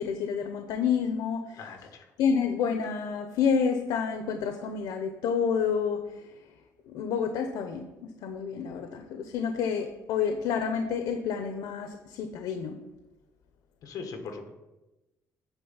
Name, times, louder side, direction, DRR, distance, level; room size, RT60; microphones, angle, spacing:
voice 1, 0.0-1.6 2.2-6.1 6.9-7.9 8.2-12.8, left 6 dB, 90° left, 6 dB, 0.7 m, -29 dB
voice 2, 1.6-2.1 13.8-14.5, left 5 dB, 55° left, 4 dB, 1.5 m, -40 dB
9.1 x 4.0 x 7.1 m, 1.0 s
cardioid pair, 170°, 7 cm